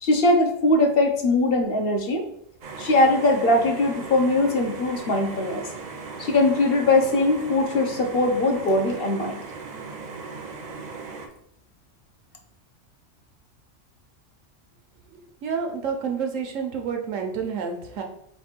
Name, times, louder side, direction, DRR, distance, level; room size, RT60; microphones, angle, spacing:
voice 1, 0.0-2.2 2.8-5.6 6.2-9.4, left 2 dB, 55° left, 3 dB, 0.8 m, -21 dB
sound 1, 2.6-11.3, right 4 dB, 50° right, 0.5 m, -38 dB
voice 2, 15.1-18.0, right 6 dB, 85° right, 4 dB, 1.1 m, -29 dB
4.2 x 2.3 x 4.3 m, 0.71 s
omnidirectional pair, 1.3 m